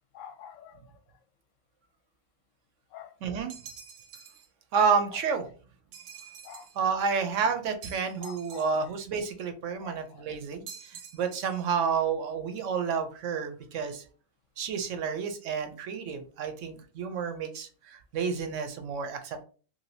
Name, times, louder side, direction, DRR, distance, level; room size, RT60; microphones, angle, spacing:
voice 1, 0.1-1.2 2.9-3.2 5.1-5.2 6.4-6.7 8.2-8.9 9.8-10.3 13.8-13.9, left 8 dB, 70° left, 7 dB, 0.9 m, -48 dB
voice 2, 3.2-3.5 4.7-5.4 6.8-14.0 14.6-19.4, right 6 dB, 70° right, 7 dB, 0.8 m, -30 dB
sound 1, 3.5-4.5 5.9-6.8 7.8-9.0 10.7-11.7, right 7 dB, 85° right, 1.1 m, -47 dB
3.1 x 2.6 x 2.6 m, 0.39 s
omnidirectional pair, 1.5 m